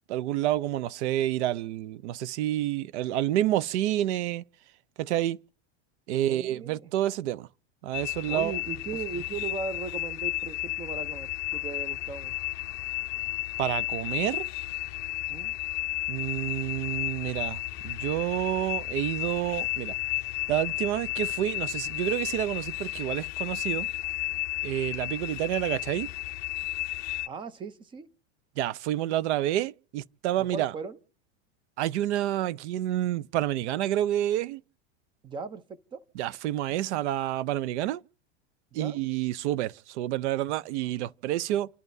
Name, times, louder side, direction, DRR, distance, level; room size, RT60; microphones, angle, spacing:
voice 1, 0.1-4.4 5.0-5.4 6.1-7.5 7.8-8.5 13.6-14.5 16.1-20.0 20.5-23.9 24.6-26.1 28.6-30.7 31.8-34.6 36.2-38.0 38.7-41.7, right 13 dB, 75° right, 0.6 m, -29 dB
voice 2, 6.1-6.9 8.3-12.3 15.3-15.5 27.3-28.1 30.4-31.0 35.2-36.0 38.7-39.0, right 5 dB, 15° right, 0.5 m, -38 dB
sound 1, 7.9-27.3, left 17 dB, 45° left, 0.5 m, -33 dB
sound 2, 9.9-25.7, right 2 dB, 55° right, 3.3 m, -60 dB
29.5 x 11.0 x 2.7 m
supercardioid pair, 155°, 34 cm